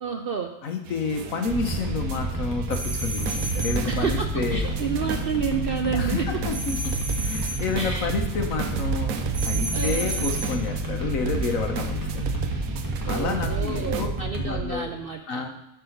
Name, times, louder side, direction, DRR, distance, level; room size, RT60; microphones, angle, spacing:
voice 1, 0.0-0.5 3.8-6.3 7.8-8.1 9.7-10.3 13.0-15.4, right 6 dB, 60° right, 5 dB, 0.6 m, -30 dB
voice 2, 0.6-4.6 5.9-9.1 9.4-12.3 13.0-14.1 14.4-14.9 15.3-15.5, left 4 dB, 70° left, 4 dB, 1.4 m, -29 dB
sound 1, 0.9-14.1, right 6 dB, 80° right, 1.2 m, -33 dB
sound 2, 1.5-14.6, right 1 dB, 15° right, 1.5 m, -30 dB
sound 3, 2.7-3.9 6.5-7.7 9.3-10.6, right 2 dB, 40° right, 1.8 m, -32 dB
7.5 x 4.9 x 6.5 m, 0.88 s
omnidirectional pair, 1.5 m